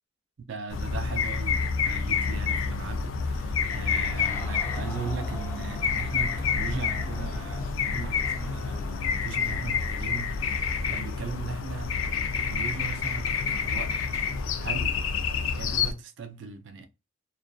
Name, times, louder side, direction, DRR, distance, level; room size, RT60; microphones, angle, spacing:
voice 1, 0.4-10.4 10.9-12.0 12.4-14.0 14.6-15.0 15.4-16.9, right 5 dB, 70° right, 0.4 m, -38 dB
sound 1, 0.7-15.9, left 5 dB, 90° left, 0.4 m, -28 dB
Crowd, 3.7-9.2 9.6-9.7, right 1 dB, 10° left, 0.5 m, -45 dB
2.5 x 2.3 x 2.2 m
head